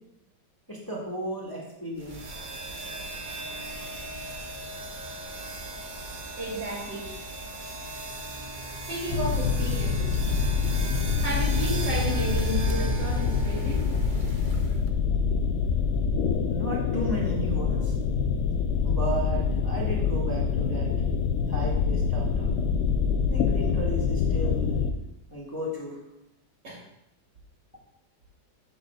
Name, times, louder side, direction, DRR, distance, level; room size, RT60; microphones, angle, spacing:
voice 1, 0.7-2.2 16.5-17.9 18.8-20.9 21.5-22.5 23.3-24.8 25.3-26.0, right 1 dB, 10° left, -4 dB, 1.7 m, -34 dB
sound 1, 2.0-14.9, right 1 dB, 35° right, 0.9 m, -36 dB
voice 2, 6.4-7.0 8.9-10.2 10.5-10.7 11.2-13.9 26.6-26.8, right 1 dB, 80° right, -5 dB, 4.0 m, -33 dB
sound 2, 9.1-24.9, left 5 dB, 85° left, 1.3 m, -26 dB
13.5 x 6.4 x 2.4 m, 0.87 s
omnidirectional pair, 1.9 m